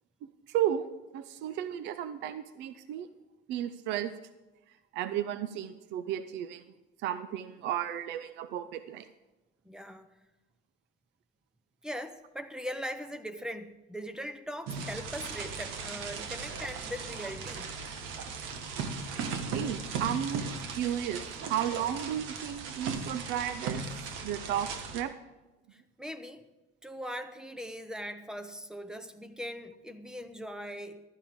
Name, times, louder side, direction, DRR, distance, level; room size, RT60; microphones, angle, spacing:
voice 1, 0.5-0.9 1.1-3.1 3.5-4.1 4.9-6.6 7.0-9.1 19.5-25.1, right 10 dB, 60° right, 12 dB, 0.6 m, -33 dB
voice 2, 9.6-10.1 11.8-17.7 25.7-26.4 26.8-31.0, equal, 5° right, 10 dB, 0.7 m, -40 dB
sound 1, 14.7-25.0, right 5 dB, 75° right, 1.5 m, -37 dB
15.0 x 12.5 x 3.7 m, 1.1 s
cardioid pair, 155°, 20 cm